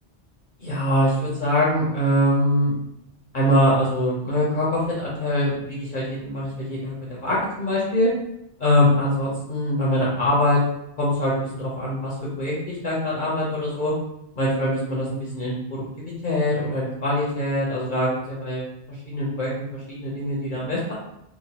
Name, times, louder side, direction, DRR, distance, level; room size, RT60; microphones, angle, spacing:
voice 1, 0.6-2.7 3.3-6.9 7.2-8.1 8.6-10.6 11.0-13.9 14.4-20.9, left 1 dB, 50° left, -5 dB, 0.7 m, -23 dB
2.9 x 2.2 x 2.7 m, 0.79 s
omnidirectional pair, 1.2 m